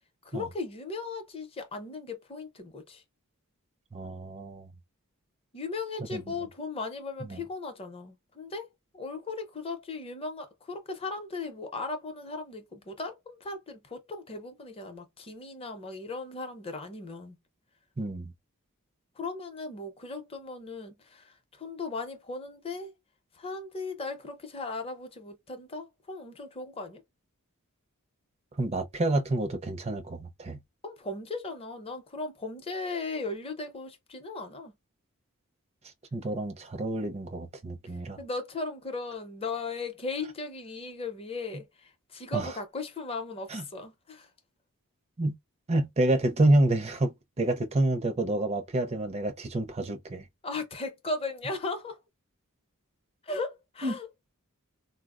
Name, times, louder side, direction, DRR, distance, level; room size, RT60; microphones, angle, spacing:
voice 1, 0.2-3.0 5.5-8.7 8.9-17.4 19.2-22.9 23.4-27.0 30.8-34.7 38.2-44.3 50.4-52.0 53.2-54.1, left 3 dB, 25° left, 0.6 m, -37 dB
voice 2, 3.9-4.7 6.1-6.3 7.3-7.4 18.0-18.3 28.6-30.6 36.1-38.2 42.3-42.5 43.5-43.6 45.2-45.4 45.7-50.2 53.8-54.0, right 1 dB, 30° right, 0.5 m, -28 dB
4.0 x 2.0 x 2.4 m
head